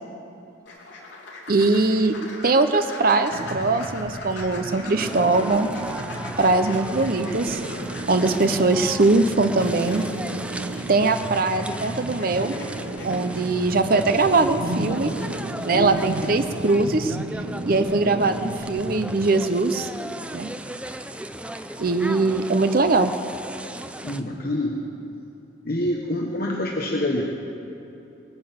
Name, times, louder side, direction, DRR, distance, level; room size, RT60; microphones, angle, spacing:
sound 1, 0.7-16.7, left 2 dB, 75° left, 2.9 m, -42 dB
voice 1, 1.5-2.1 2.4-5.7 6.4-7.6 8.1-10.0 10.9-12.5 13.0-15.1 15.6-17.2 17.7-19.9 20.3-20.5 21.8-23.1, right 3 dB, 50° right, 8 dB, 0.7 m, -21 dB
sound 2, 3.3-19.3, right 1 dB, 75° right, 0.9 m, -34 dB
sound 3, 4.9-24.2, right 1 dB, 5° right, 0.4 m, -37 dB
voice 2, 24.0-24.8 25.6-27.2, left 1 dB, 50° left, -1 dB, 1.1 m, -26 dB
20.5 x 9.7 x 7.2 m, 2.9 s
head